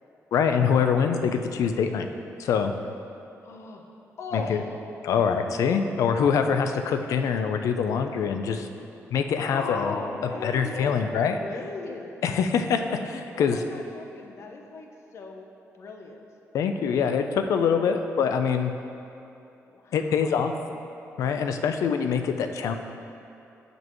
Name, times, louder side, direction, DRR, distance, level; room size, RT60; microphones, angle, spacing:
voice 1, 0.3-2.1 2.4-2.7 4.5-4.6 5.0-8.7 9.1-9.9 10.4-11.4 12.2-13.6 16.5-18.7 19.9-20.5 21.2-22.8, left 6 dB, 90° left, 7 dB, 0.6 m, -24 dB
voice 2, 3.4-3.9 4.2-4.7 9.4-12.2 13.3-15.5 15.8-16.2 19.7-20.6, left 3 dB, 60° left, 2 dB, 0.9 m, -37 dB
15.5 x 5.3 x 3.1 m, 2.7 s
wide cardioid pair, 140°, 5 cm